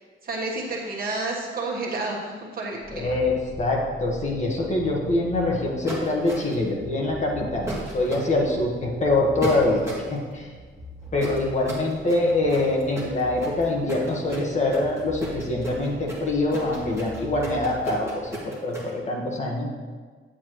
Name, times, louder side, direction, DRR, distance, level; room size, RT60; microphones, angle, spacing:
voice 1, 0.2-3.1, right 2 dB, 45° right, -2 dB, 1.3 m, -30 dB
sound 1, 2.8-18.3, equal, 5° left, 1.4 m, -43 dB
voice 2, 2.9-10.5 11.1-19.7, left 2 dB, 35° left, -1 dB, 1.4 m, -24 dB
sound 2, 5.9-6.7 7.7-8.2 9.4-10.1 11.2-18.9, right 2 dB, 15° right, 2.0 m, -34 dB
9.0 x 8.2 x 3.1 m, 1.5 s
wide cardioid pair, 175°, 21 cm